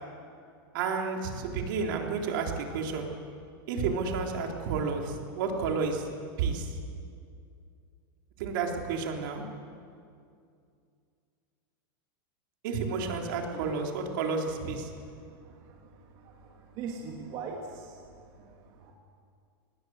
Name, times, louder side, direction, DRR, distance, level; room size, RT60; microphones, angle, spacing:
voice 1, 0.7-3.1 3.7-6.0 6.4-6.7 8.4-9.4 12.6-14.9, right 5 dB, 60° right, 2 dB, 3.8 m, -31 dB
voice 2, 16.8-17.9 18.4-18.5, right 5 dB, 40° right, -1 dB, 2.7 m, -39 dB
25.5 x 20.0 x 8.0 m, 2.4 s
supercardioid pair, 160°, 12 cm